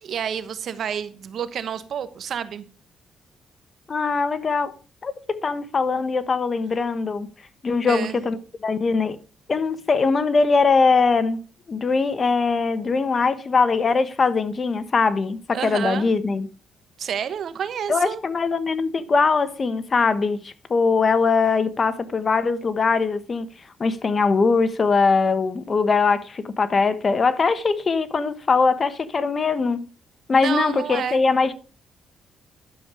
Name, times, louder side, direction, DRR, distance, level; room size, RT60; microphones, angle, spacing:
voice 1, 0.0-2.6 7.8-8.2 15.5-16.1 17.0-18.2 30.3-31.2, right 8 dB, 60° right, 1.1 m, -29 dB
voice 2, 3.9-4.7 5.0-7.3 7.6-8.4 8.6-9.2 9.5-11.4 11.7-16.5 17.9-23.5 23.8-29.8 30.3-31.5, left 4 dB, 40° left, 1.2 m, -21 dB
11.5 x 7.2 x 4.8 m
cardioid pair, 90°, 0 cm